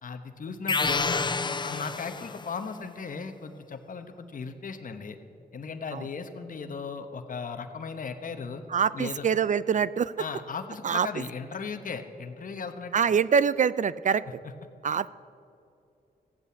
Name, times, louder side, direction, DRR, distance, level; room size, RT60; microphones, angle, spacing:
voice 1, 0.0-5.2 5.5-8.6 8.9-9.2 10.2-12.9 14.4-14.5, left 5 dB, 55° left, 7 dB, 1.0 m, -37 dB
sound 1, 0.7-2.6, left 4 dB, 30° left, 0.5 m, -29 dB
voice 2, 8.7-10.1 10.8-11.1 12.9-14.2 14.8-15.1, right 7 dB, 50° right, 18 dB, 0.4 m, -24 dB
15.0 x 8.2 x 8.5 m, 2.6 s
cardioid pair, 75°, 16 cm